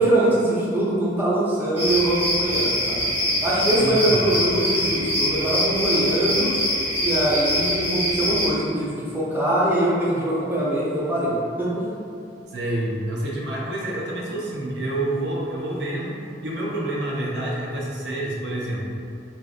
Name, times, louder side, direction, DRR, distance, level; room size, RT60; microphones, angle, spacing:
voice 1, 0.0-3.0 3.4-6.5 6.9-11.9, right 1 dB, 10° right, -8 dB, 0.6 m, -22 dB
sound 1, 1.8-8.5, equal, 35° right, 0.9 m, -24 dB
voice 2, 3.8-4.2 12.5-18.8, right 1 dB, 70° right, -4 dB, 0.5 m, -28 dB
4.0 x 2.4 x 2.4 m, 2.4 s
head